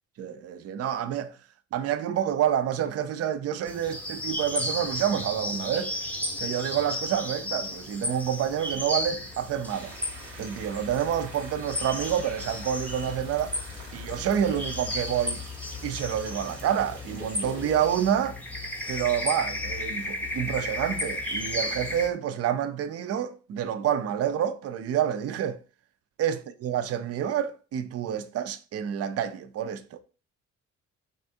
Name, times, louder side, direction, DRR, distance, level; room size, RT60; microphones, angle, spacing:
voice 1, 0.2-1.4 1.7-5.9 6.4-9.9 10.4-13.6 13.9-15.4 15.8-18.4 18.9-25.6 26.2-30.0, right 9 dB, 55° right, 0.4 m, -28 dB
sound 1, 3.7-22.1, left 1 dB, 5° left, 0.6 m, -34 dB
sound 2, 9.7-18.1, right 3 dB, 85° right, 1.1 m, -46 dB
3.4 x 2.4 x 2.6 m
cardioid pair, 90°, 30 cm